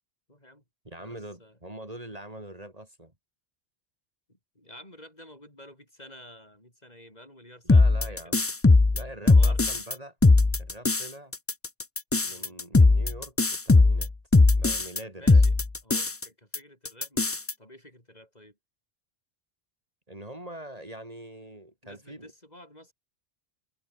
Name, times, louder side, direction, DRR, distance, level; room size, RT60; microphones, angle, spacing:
voice 1, 0.3-0.6 1.0-1.6 4.3-8.4 9.2-9.7 12.3-12.6 14.9-15.5 15.8-18.6 21.8-22.9, left 1 dB, 40° left, 8.1 m, -51 dB
voice 2, 0.9-3.1 7.6-8.4 8.9-10.2 10.6-11.3 12.2-14.1 14.6-15.4 20.1-22.3, right 1 dB, 35° right, 3.9 m, -43 dB
sound 1, 7.7-9.9 10.2-11.1 11.3-15.0 15.3-16.2 16.5-16.6 16.8-17.5, left 3 dB, 20° left, 0.4 m, -19 dB
omnidirectional pair, 1.1 m